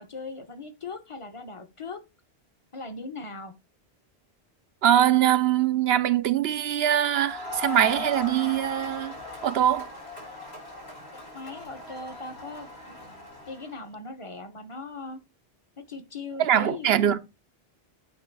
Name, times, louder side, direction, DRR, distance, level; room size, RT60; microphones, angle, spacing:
voice 1, 0.0-2.0 2.7-3.5 11.3-15.2 15.9-17.0, left 3 dB, 30° left, 1.0 m, -39 dB
voice 2, 4.8-9.1 9.4-9.9 16.4-17.2, right 10 dB, 75° right, 0.8 m, -22 dB
Crowd, 7.2-13.8, left 2 dB, 85° left, 5.2 m, -39 dB
8.9 x 3.2 x 4.6 m
omnidirectional pair, 1.1 m